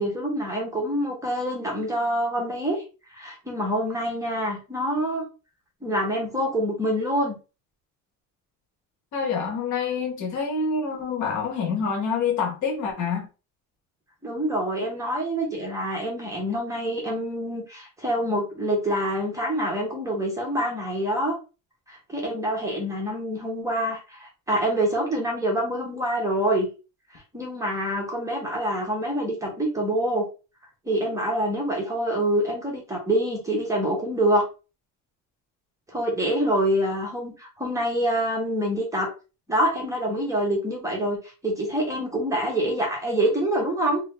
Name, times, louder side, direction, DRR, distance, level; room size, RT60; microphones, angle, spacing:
voice 1, 0.0-2.8 3.1-5.2 5.8-7.4 14.2-21.3 21.9-26.7 27.1-30.3 30.8-34.4 35.9-39.1 39.5-41.2 41.4-44.0, right 1 dB, 10° right, 1.0 m, -26 dB
voice 2, 9.1-13.3, left 5 dB, 60° left, 1.2 m, -26 dB
2.8 x 2.7 x 3.3 m
cardioid pair, 150°, 32 cm